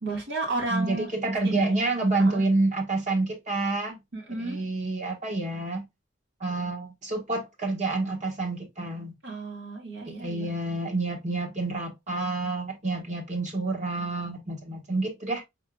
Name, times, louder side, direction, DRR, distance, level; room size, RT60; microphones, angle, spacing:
voice 1, 0.0-1.1 1.4-1.7 2.2-2.4 4.1-4.6 9.2-10.5, right 2 dB, 75° right, 1.9 m, -32 dB
voice 2, 0.7-4.0 4.4-5.8 6.4-9.1 10.1-15.4, right 2 dB, 40° right, 1.2 m, -28 dB
4.9 x 3.5 x 2.3 m
head